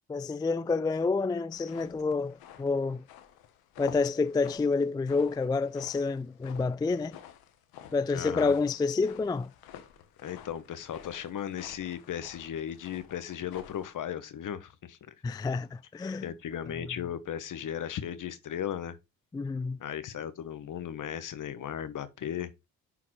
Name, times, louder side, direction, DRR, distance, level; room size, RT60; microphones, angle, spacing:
voice 1, 0.1-3.0 3.8-7.2 7.9-9.5 15.2-16.3 19.3-19.8, left 4 dB, 10° left, 0.3 m, -28 dB
sound 1, 1.5-13.9, left 10 dB, 90° left, 1.1 m, -51 dB
voice 2, 8.1-8.5 10.2-15.1 16.2-19.0 19.8-22.5, left 9 dB, 60° left, 1.1 m, -36 dB
11.0 x 3.8 x 3.1 m
cardioid pair, 75°, 36 cm